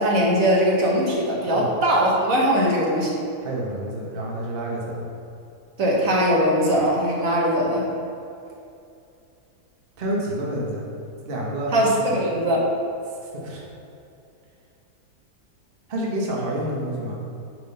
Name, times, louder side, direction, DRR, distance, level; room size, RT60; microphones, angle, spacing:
voice 1, 0.0-3.2 5.8-7.9 11.7-12.7, equal, 60° right, -3 dB, 1.3 m, -20 dB
voice 2, 3.4-5.1 10.0-10.9 11.3-11.7 12.1-12.2 13.2-13.7 15.9-17.2, right 1 dB, 40° right, -3 dB, 1.0 m, -28 dB
5.7 x 3.7 x 5.3 m, 2.6 s
omnidirectional pair, 1.7 m